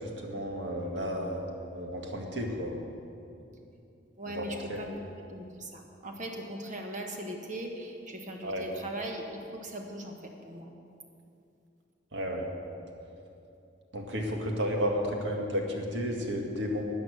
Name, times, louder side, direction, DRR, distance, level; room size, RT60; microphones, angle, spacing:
voice 1, 0.2-2.8 4.3-4.8 8.4-8.7 12.1-12.5 13.9-16.8, equal, 65° right, 1 dB, 1.8 m, -32 dB
voice 2, 4.2-10.7, right 1 dB, 40° right, 2 dB, 1.4 m, -40 dB
13.5 x 9.3 x 6.4 m, 2.7 s
head